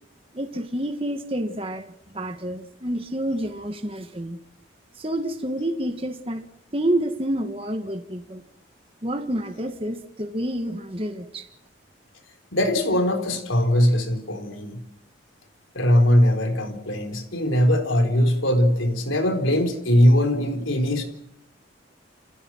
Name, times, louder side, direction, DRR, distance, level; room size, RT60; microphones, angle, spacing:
voice 1, 0.3-4.4 5.0-6.4 6.7-8.4 9.0-11.5, right 1 dB, 30° right, 1.6 m, -28 dB
voice 2, 12.5-14.8 15.7-21.0, equal, 90° left, 4.2 m, -20 dB
29.5 x 16.5 x 6.2 m
head